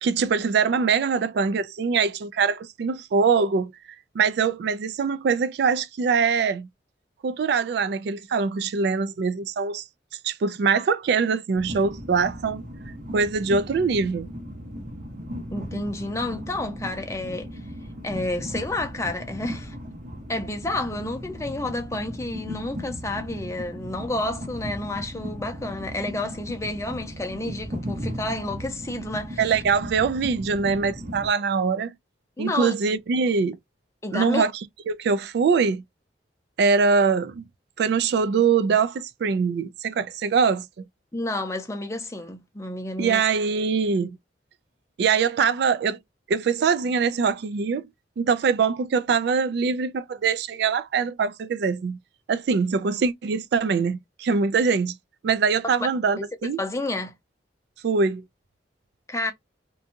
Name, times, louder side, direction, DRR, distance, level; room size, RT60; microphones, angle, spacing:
voice 1, 0.0-3.7 4.1-6.7 7.2-9.8 10.2-12.6 13.1-14.3 29.4-31.9 32.4-33.6 34.1-34.5 34.9-35.8 36.6-37.4 37.8-40.7 43.0-44.2 45.0-46.0 46.3-47.9 48.2-52.0 52.3-54.9 55.2-56.6 57.8-58.2, right 5 dB, 60° right, 0.3 m, -23 dB
Train, 11.5-31.3, equal, 45° right, 1.1 m, -36 dB
voice 2, 15.5-17.5 18.0-19.8 20.3-29.6 32.4-32.7 34.0-34.4 41.1-43.2 56.2-56.3 56.6-57.1 59.1-59.3, left 2 dB, 15° left, 0.6 m, -30 dB
2.6 x 2.2 x 2.7 m
head